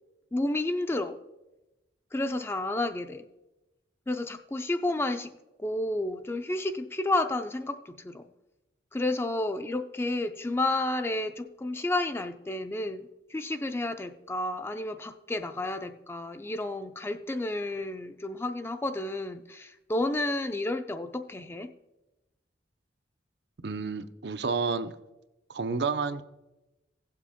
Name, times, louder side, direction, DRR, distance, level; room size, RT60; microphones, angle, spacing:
voice 1, 0.3-1.2 2.1-3.2 4.1-5.3 5.6-8.3 8.9-21.7, left 2 dB, 15° left, 0.4 m, -31 dB
voice 2, 23.6-24.9 25.5-26.2, right 4 dB, 70° right, 0.6 m, -30 dB
16.0 x 7.5 x 3.5 m
head